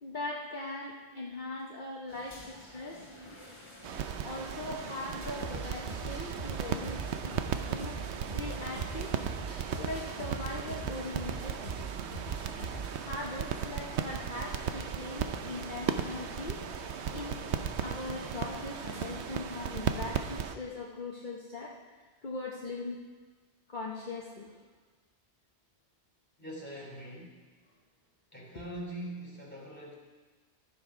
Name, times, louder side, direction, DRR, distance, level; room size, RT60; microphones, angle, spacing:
voice 1, 0.0-3.0 4.2-7.4 7.7-8.0 8.3-9.1 9.8-11.6 13.0-16.6 17.1-17.4 17.8-21.7 22.2-23.0 23.7-24.6, left 2 dB, 50° left, -3 dB, 1.1 m, -40 dB
sound 1, 2.1-19.1, left 1 dB, 25° left, 2.3 m, -52 dB
sound 2, 3.8-20.5, right 8 dB, 85° right, 1.0 m, -36 dB
sound 3, 5.4-13.1, right 4 dB, 60° right, 1.9 m, -42 dB
voice 2, 26.4-27.4 28.3-29.9, right 1 dB, 10° left, -4 dB, 2.9 m, -42 dB
14.0 x 7.1 x 4.9 m, 1.4 s
omnidirectional pair, 1.1 m